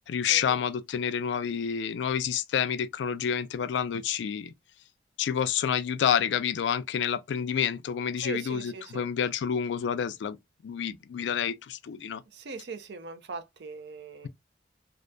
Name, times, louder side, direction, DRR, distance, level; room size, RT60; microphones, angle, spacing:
voice 1, 0.1-4.5 5.2-10.4 10.6-12.2, left 8 dB, 75° left, 0.3 m, -29 dB
voice 2, 8.2-9.1 12.3-14.3, right 4 dB, 70° right, 0.5 m, -40 dB
2.5 x 2.1 x 2.5 m
head